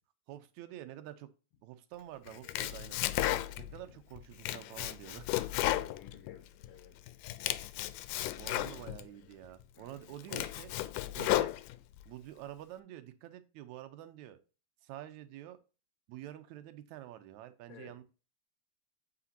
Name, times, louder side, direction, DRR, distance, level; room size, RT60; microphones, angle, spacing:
voice 1, 0.3-1.3 1.6-3.0 3.6-5.3 8.4-10.7 11.2-11.5 12.1-14.4 14.8-15.6 16.1-18.0, right 13 dB, 75° right, 1.8 m, -48 dB
Domestic sounds home sounds, 2.3-3.8 4.2-6.7 7.1-9.1 9.6-9.7 10.1-12.0, left 15 dB, 90° left, 2.2 m, -34 dB
voice 2, 5.7-7.2 9.7-10.0 10.3-10.5 17.7-18.0, left 9 dB, 55° left, 1.9 m, -55 dB
8.5 x 5.1 x 2.7 m
omnidirectional pair, 3.7 m